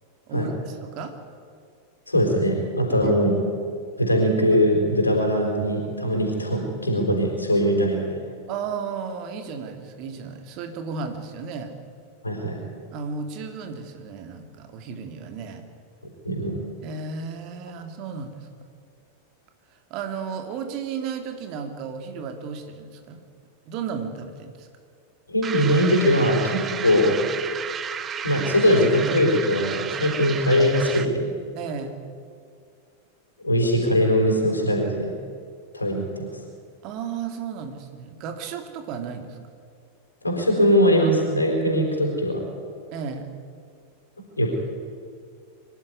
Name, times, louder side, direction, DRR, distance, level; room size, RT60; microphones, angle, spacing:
voice 1, 0.3-1.1 3.0-3.1 8.5-11.7 12.9-15.6 16.8-18.5 19.9-23.2 23.7-24.7 31.6-32.0 36.8-39.4 42.9-43.3, right 5 dB, 40° right, 6 dB, 2.4 m, -34 dB
voice 2, 2.1-3.4 4.0-8.2 12.2-12.6 16.2-16.6 25.3-27.2 28.2-31.3 33.4-35.1 35.7-36.3 40.2-42.4 44.4-44.6, equal, 80° left, 0 dB, 4.3 m, -21 dB
sound 1, 25.4-31.2, right 7 dB, 25° right, 0.9 m, -32 dB
24.5 x 12.0 x 9.5 m, 2.2 s
figure-of-eight pair, 90°, 0 cm